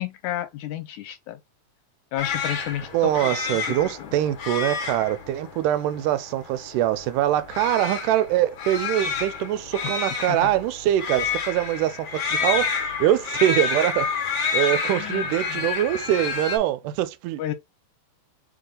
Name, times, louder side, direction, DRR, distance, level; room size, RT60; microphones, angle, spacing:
voice 1, 0.0-1.4 2.1-4.2 9.8-9.9 10.3-10.5 15.0-15.7 17.4-17.5, left 12 dB, 80° left, 2.0 m, -32 dB
sound 1, 2.2-16.6, left 5 dB, 60° left, 1.3 m, -29 dB
voice 2, 2.9-14.1 14.5-17.4, right 13 dB, 90° right, 2.1 m, -23 dB
4.8 x 2.5 x 3.8 m
omnidirectional pair, 3.6 m